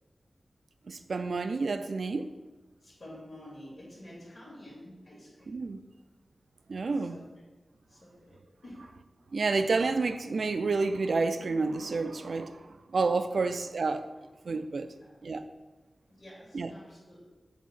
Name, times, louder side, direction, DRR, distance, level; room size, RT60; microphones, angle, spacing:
voice 1, 0.9-2.3 5.5-5.8 6.7-7.2 9.3-14.0 14.5-14.9 15.2-15.4 16.5-16.7, right 3 dB, 75° right, 10 dB, 0.3 m, -29 dB
voice 2, 2.8-5.6 6.9-7.2 7.9-8.4 8.6-8.8 13.3-13.4 14.8-15.1 16.1-17.3, left 1 dB, 55° left, -9 dB, 2.0 m, -49 dB
7.1 x 2.7 x 5.8 m, 1.2 s
wide cardioid pair, 105°, 0 cm